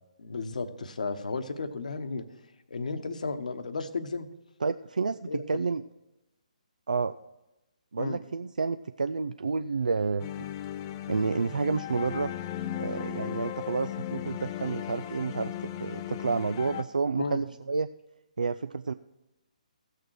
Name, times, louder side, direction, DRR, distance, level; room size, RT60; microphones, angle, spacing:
voice 1, 0.2-2.3 2.7-4.3 5.3-5.6 8.0-8.2 17.2-17.4, left 4 dB, 70° left, 9 dB, 1.0 m, -34 dB
voice 2, 4.6-5.8 6.9-7.1 7.9-10.3 11.1-12.3 12.8-15.5 15.8-17.9 18.4-18.9, right 4 dB, 80° right, 10 dB, 0.3 m, -30 dB
sound 1, 10.2-16.8, left 11 dB, 30° left, 0.5 m, -36 dB
16.0 x 6.5 x 4.7 m, 0.97 s
figure-of-eight pair, 140°, 4 cm